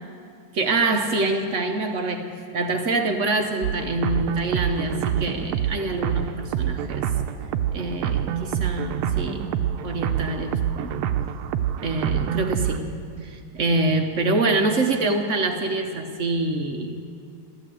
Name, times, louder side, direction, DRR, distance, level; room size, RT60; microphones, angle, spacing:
voice 1, 0.5-7.0 7.7-9.6 9.8-11.0 11.8-17.0, right 2 dB, 60° right, 5 dB, 0.8 m, -25 dB
sound 1, 3.6-12.8, right 9 dB, 85° right, 1.5 m, -26 dB
14.5 x 12.0 x 7.7 m, 2.4 s
omnidirectional pair, 2.4 m